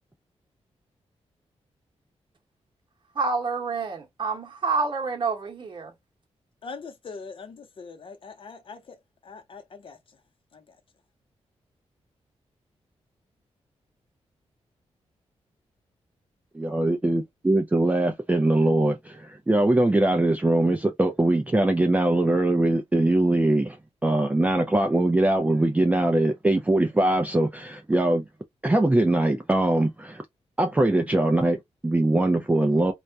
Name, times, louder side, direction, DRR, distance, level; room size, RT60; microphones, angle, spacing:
voice 1, 3.1-5.9, right 4 dB, 45° right, 1.0 m, -28 dB
voice 2, 6.6-10.2 10.5-10.8, left 4 dB, 50° left, 0.7 m, -42 dB
voice 3, 16.5-23.8 24.0-28.2 28.6-30.2 30.6-32.9, right 1 dB, 15° right, 0.4 m, -22 dB
2.3 x 2.1 x 2.6 m
cardioid pair, 85°, 12 cm